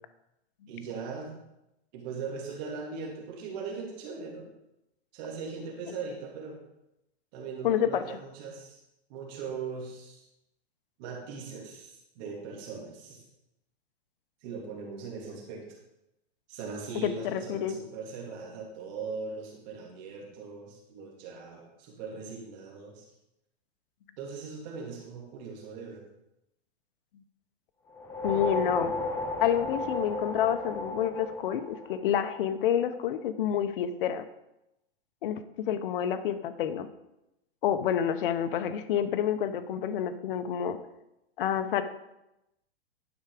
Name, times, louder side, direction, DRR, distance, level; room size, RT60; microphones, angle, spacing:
voice 1, 0.7-1.4 1.9-4.4 5.1-6.6 7.3-8.8 9.1-10.3 11.0-13.2 14.4-15.7 16.5-23.1 24.2-26.0, right 5 dB, 40° right, -1 dB, 2.9 m, -40 dB
voice 2, 7.6-8.2 17.0-17.7 28.2-28.9 29.4-34.2 35.2-35.4 35.7-36.9 37.6-40.8 41.4-41.8, left 9 dB, 55° left, 10 dB, 0.8 m, -28 dB
sound 1, 27.9-32.5, left 2 dB, 10° left, 0.4 m, -34 dB
11.0 x 5.8 x 4.9 m, 0.89 s
hypercardioid pair, 150°, 33 cm